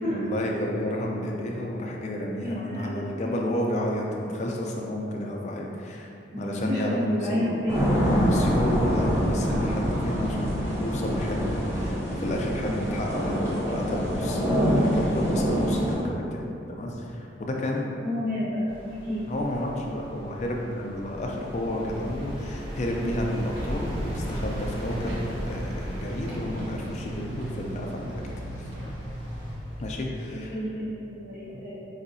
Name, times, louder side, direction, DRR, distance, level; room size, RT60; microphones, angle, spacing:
voice 1, 0.1-6.1 6.4-7.6 8.1-17.9 19.3-28.3 28.6-28.7 29.8-30.5, left 1 dB, 40° left, 0 dB, 0.3 m, -31 dB
voice 2, 2.4-3.3 6.3-7.8 18.0-18.7 19.0-19.2 30.3-31.8, equal, 55° right, -14 dB, 1.5 m, -30 dB
sound 1, 7.7-15.9, equal, 15° right, 0.6 m, -25 dB
sound 2, 18.7-30.0, equal, 30° right, 0.9 m, -38 dB
sound 3, 23.5-29.6, right 1 dB, 80° right, 0.7 m, -38 dB
4.1 x 2.7 x 2.6 m, 2.7 s
head